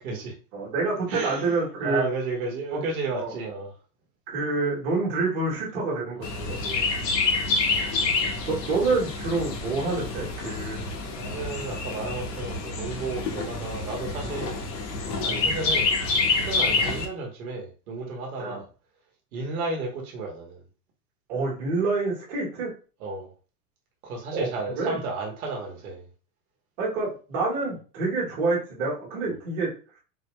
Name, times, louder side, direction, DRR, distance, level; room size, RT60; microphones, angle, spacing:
voice 1, 0.0-0.3 1.1-3.7 6.2-6.9 7.4-7.5 11.1-14.6 15.2-15.9 16.3-18.7 19.3-20.6 23.0-23.3 24.0-26.0, right 3 dB, 60° right, 0 dB, 1.1 m, -33 dB
voice 2, 0.5-2.0 2.7-2.8 3.1-3.3 4.3-6.6 8.5-10.8 13.3-13.4 15.2-15.4 18.4-18.6 21.3-22.7 24.3-24.5 24.8-25.0 26.8-30.0, right 3 dB, 30° right, -5 dB, 1.2 m, -27 dB
Chirp tweet, 6.2-17.1, left 4 dB, 80° left, 1.1 m, -27 dB
4.1 x 2.2 x 3.0 m, 0.35 s
supercardioid pair, 180°, 49 cm